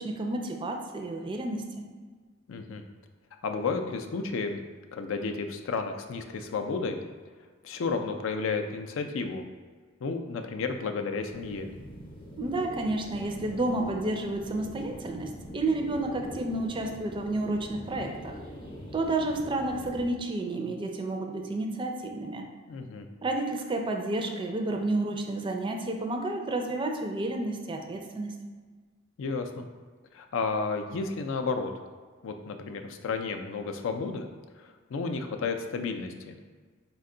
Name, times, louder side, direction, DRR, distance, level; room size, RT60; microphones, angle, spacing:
voice 1, 0.0-1.9 12.4-18.3 18.9-22.4 23.2-28.3, right 2 dB, 25° right, 3 dB, 0.4 m, -31 dB
voice 2, 2.5-2.8 3.4-4.6 4.9-7.0 7.6-9.5 10.0-11.7 22.7-23.1 29.2-29.7 30.1-31.7 32.2-34.3 34.6-36.4, left 4 dB, 70° left, 6 dB, 0.4 m, -32 dB
sound 1, 11.3-20.1, equal, 25° left, 0.7 m, -44 dB
4.3 x 2.2 x 3.7 m, 1.5 s
head